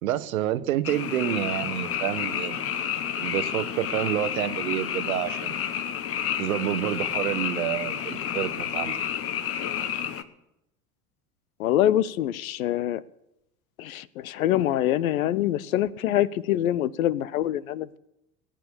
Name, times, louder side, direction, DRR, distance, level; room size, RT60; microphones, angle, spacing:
voice 1, 0.0-2.8 3.2-5.6 6.4-9.0, right 12 dB, 65° right, 14 dB, 1.0 m, -28 dB
Frog, 0.8-10.2, left 9 dB, 30° left, 1.0 m, -30 dB
voice 2, 11.6-13.0 13.8-18.0, left 12 dB, 65° left, 21 dB, 0.7 m, -25 dB
18.5 x 9.1 x 6.9 m, 0.86 s
figure-of-eight pair, 80°, 45 cm